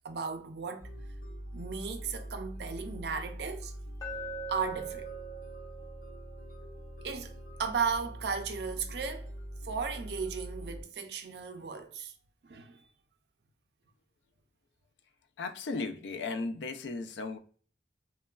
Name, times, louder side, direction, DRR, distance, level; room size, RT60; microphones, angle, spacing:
voice 1, 0.0-0.9 1.5-3.7 4.5-5.1 7.0-7.3 7.6-9.3 9.6-12.1 12.4-12.8, right 5 dB, 70° right, 0.4 m, -35 dB
sound 1, 0.8-10.8, equal, 50° left, 1.1 m, -44 dB
Glass, 4.0-8.1, right 3 dB, 20° left, 0.5 m, -43 dB
voice 2, 15.4-17.4, left 3 dB, 80° left, 0.4 m, -36 dB
3.0 x 2.2 x 2.2 m
head